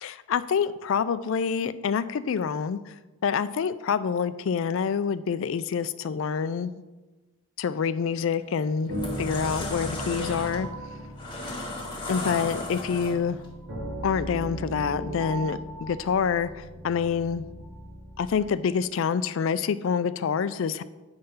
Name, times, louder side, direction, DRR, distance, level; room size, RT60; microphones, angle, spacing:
voice 1, 0.0-2.8 3.2-6.8 7.6-8.9 9.2-10.7 12.1-13.4 14.0-17.5 18.2-20.8, left 6 dB, 60° left, 14 dB, 0.3 m, -27 dB
sound 1, 8.1-8.3 8.8-13.4, left 2 dB, 20° left, 1.3 m, -35 dB
sound 2, 8.9-18.5, equal, 75° right, 2.4 m, -37 dB
8.8 x 3.7 x 5.5 m, 1.2 s
head